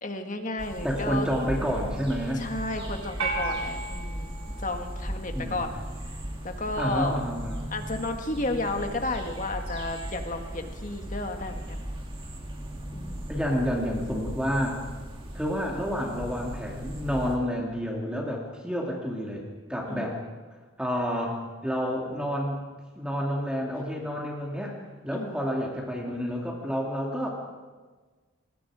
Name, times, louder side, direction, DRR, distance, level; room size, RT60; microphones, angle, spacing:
voice 1, 0.0-1.3 2.4-5.7 6.4-7.2 7.7-11.8 12.9-13.2 19.9-20.1 25.1-25.4, left 2 dB, 35° left, 5 dB, 1.9 m, -32 dB
sound 1, 0.6-17.4, equal, 25° right, 2.9 m, -37 dB
voice 2, 0.8-2.4 5.3-5.7 6.8-7.6 13.3-14.8 15.3-19.4 19.7-20.2 20.8-22.6 23.0-24.7 25.0-27.3, equal, 5° right, -2 dB, 2.5 m, -29 dB
sound 2, 3.2-5.7, right 3 dB, 90° right, 4.3 m, -34 dB
27.0 x 20.5 x 5.0 m, 1.4 s
head